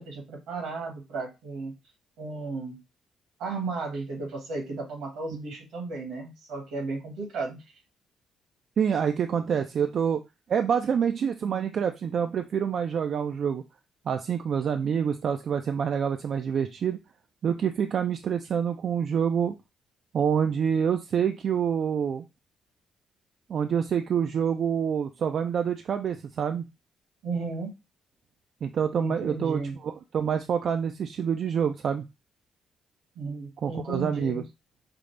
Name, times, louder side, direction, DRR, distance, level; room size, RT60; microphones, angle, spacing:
voice 1, 0.0-1.7 2.2-2.8 3.4-7.6 27.2-27.7 28.9-29.7 33.1-34.4, right 3 dB, 85° right, 2 dB, 1.4 m, -34 dB
voice 2, 8.8-10.2 10.5-13.6 14.1-17.0 17.4-19.5 20.1-22.2 23.5-26.6 28.6-32.0 33.6-34.4, right 7 dB, 60° right, 6 dB, 0.3 m, -27 dB
5.0 x 2.0 x 3.2 m, 0.25 s
cardioid pair, 90°, 0 cm